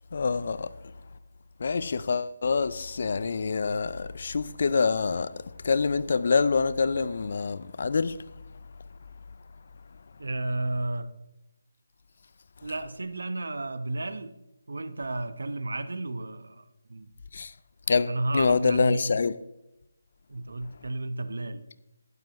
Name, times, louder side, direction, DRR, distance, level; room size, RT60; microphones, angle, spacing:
voice 1, 0.1-0.7 1.6-5.3 5.6-8.2 17.3-17.5 17.9-19.3, left 4 dB, 55° left, 0.6 m, -26 dB
voice 2, 10.2-11.1 12.6-14.3 14.7-17.1 18.1-19.1 20.3-21.6, right 2 dB, 80° right, 1.0 m, -32 dB
12.0 x 9.6 x 3.1 m
figure-of-eight pair, 160°, 0 cm